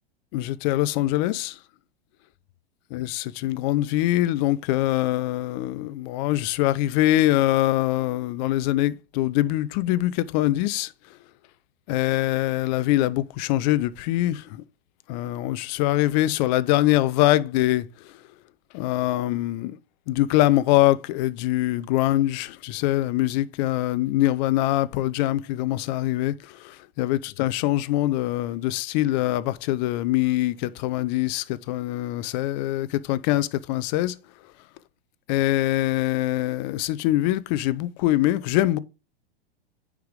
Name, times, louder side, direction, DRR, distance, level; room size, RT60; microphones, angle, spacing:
voice 1, 0.3-1.6 2.9-10.9 11.9-14.6 15.1-18.1 18.7-19.8 20.1-34.2 35.3-38.8, left 15 dB, 50° left, 0.7 m, -23 dB
9.3 x 4.9 x 3.4 m
hypercardioid pair, 110°, 29 cm